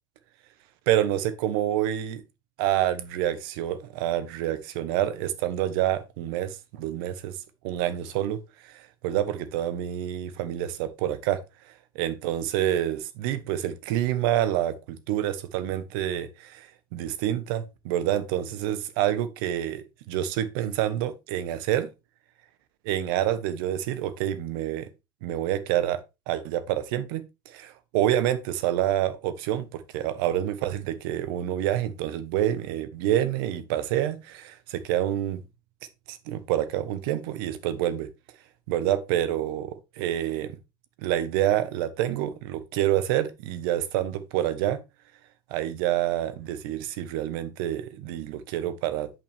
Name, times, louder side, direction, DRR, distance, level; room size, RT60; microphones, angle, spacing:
voice 1, 0.9-2.2 2.6-7.4 7.6-11.4 11.9-21.9 22.8-24.9 25.2-35.4 36.1-38.1 38.7-40.6 41.0-44.8 45.5-49.1, right 12 dB, 70° right, 1.3 m, -27 dB
10.5 x 5.8 x 3.5 m
hypercardioid pair, 95°, 12 cm